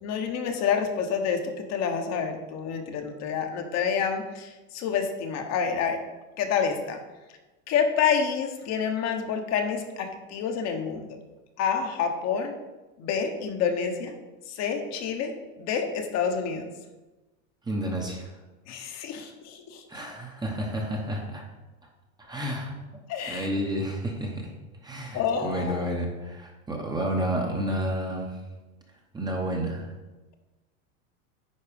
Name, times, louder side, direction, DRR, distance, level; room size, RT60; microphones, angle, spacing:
voice 1, 0.0-6.0 6.4-7.0 7.7-11.1 11.6-12.5 13.0-14.1 14.5-16.7 18.7-19.8 23.1-23.5 25.1-25.8, left 6 dB, 40° left, 4 dB, 1.1 m, -28 dB
voice 2, 17.6-18.3 19.2-19.3 19.9-21.5 22.2-22.8 23.3-24.5 24.8-28.4 29.1-29.9, right 1 dB, 10° right, 1 dB, 0.9 m, -30 dB
9.8 x 4.4 x 5.1 m, 1.1 s
supercardioid pair, 145°, 41 cm